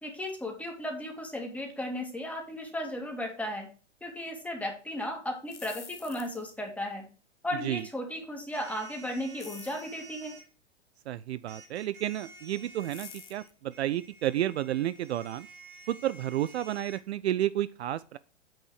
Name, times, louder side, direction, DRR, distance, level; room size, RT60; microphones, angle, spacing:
voice 1, 0.0-3.7 4.0-7.1 7.4-10.4, left 1 dB, 5° left, 2.3 m, -35 dB
sound 1, 5.5-6.6 9.4-9.9 12.8-13.5, left 6 dB, 85° left, 0.9 m, -47 dB
sound 2, 8.5-10.5 11.5-17.0, right 3 dB, 50° right, 2.5 m, -51 dB
voice 2, 11.1-15.5 15.9-18.2, right 12 dB, 65° right, 0.5 m, -31 dB
8.9 x 5.3 x 4.8 m
figure-of-eight pair, 100°, 35 cm